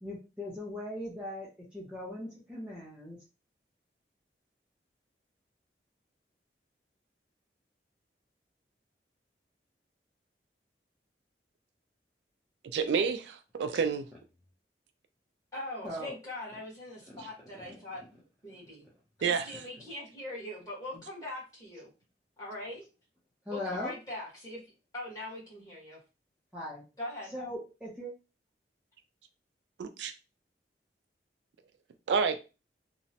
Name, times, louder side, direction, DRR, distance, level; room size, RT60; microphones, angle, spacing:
voice 1, 0.0-3.2 15.8-16.2 17.1-17.2 23.5-23.9 26.5-26.8 27.3-28.1, left 1 dB, 5° right, 0.6 m, -39 dB
voice 2, 12.7-14.1 19.2-19.4 29.8-30.1 32.1-32.4, right 5 dB, 80° right, 0.4 m, -29 dB
voice 3, 15.5-18.0 18.4-18.8 19.2-21.9 22.4-22.8 23.5-24.6 24.9-26.0 27.0-27.3, left 1 dB, 20° left, 1.3 m, -41 dB
2.9 x 2.1 x 2.7 m
head